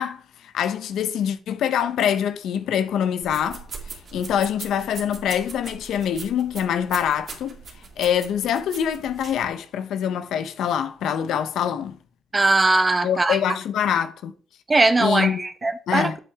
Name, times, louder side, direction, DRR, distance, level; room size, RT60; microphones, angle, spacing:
voice 1, 0.0-3.7 4.1-7.6 8.0-12.0 13.0-14.3 15.0-15.4 15.9-16.2, left 9 dB, 75° left, 0.9 m, -24 dB
sound 1, 3.2-9.5, right 5 dB, 45° right, 2.2 m, -40 dB
voice 2, 12.3-13.4 14.7-16.1, right 2 dB, 25° right, 1.0 m, -20 dB
8.2 x 7.5 x 3.6 m
cardioid pair, 90°, 0 cm